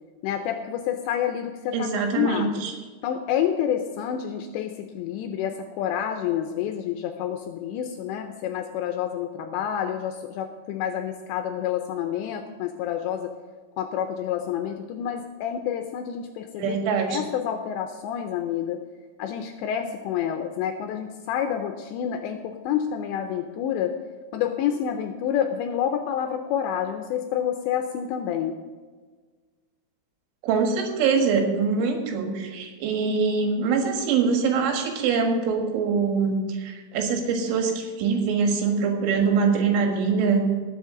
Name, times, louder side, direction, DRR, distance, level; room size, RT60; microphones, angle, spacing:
voice 1, 0.2-1.9 2.2-2.6 3.0-13.3 13.8-16.8 17.1-18.8 19.2-24.0 24.3-28.6, left 9 dB, 80° left, 6 dB, 2.7 m, -28 dB
voice 2, 1.7-2.7 16.6-17.2 30.4-40.4, right 5 dB, 80° right, 2 dB, 4.0 m, -23 dB
19.0 x 7.4 x 3.8 m, 1.4 s
omnidirectional pair, 5.5 m